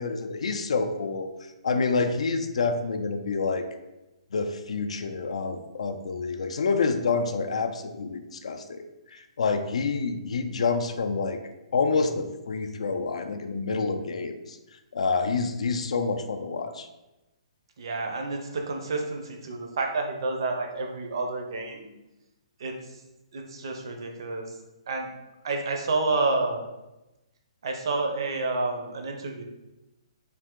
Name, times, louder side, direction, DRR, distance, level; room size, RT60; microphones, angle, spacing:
voice 1, 0.0-3.7 4.3-8.8 9.1-11.4 11.7-14.6 14.9-16.9, left 4 dB, 75° left, 7 dB, 0.4 m, -28 dB
voice 2, 17.8-21.9 22.6-22.7 23.3-24.5 24.9-25.1 25.4-26.6 27.6-29.4, right 3 dB, 45° right, 3 dB, 0.5 m, -29 dB
3.3 x 2.7 x 3.6 m, 1.0 s
hypercardioid pair, 180°, 3 cm